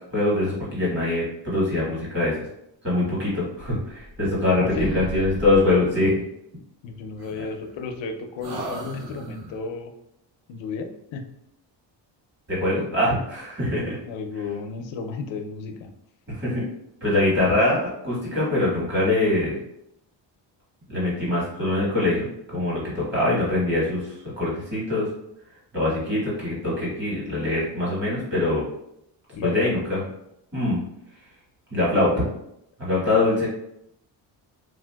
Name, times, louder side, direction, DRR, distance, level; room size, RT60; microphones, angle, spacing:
voice 1, 0.1-2.3 2.8-6.2 12.5-14.0 16.3-16.6 17.0-19.6 20.9-24.0 24.4-25.1 25.7-28.6 29.4-30.0 30.5-30.8 31.7-32.2 32.8-33.5, left 2 dB, 25° right, -7 dB, 1.4 m, -23 dB
sound 1, 3.6-4.4 4.7-5.8 7.2-8.0 8.4-9.7, right 1 dB, 60° right, 0.8 m, -35 dB
voice 2, 4.6-4.9 6.8-9.9 10.5-11.2 14.1-15.9 29.3-29.8, left 4 dB, 85° left, 5 dB, 0.6 m, -33 dB
3.1 x 2.7 x 2.2 m, 0.78 s
cardioid pair, 165°, 44 cm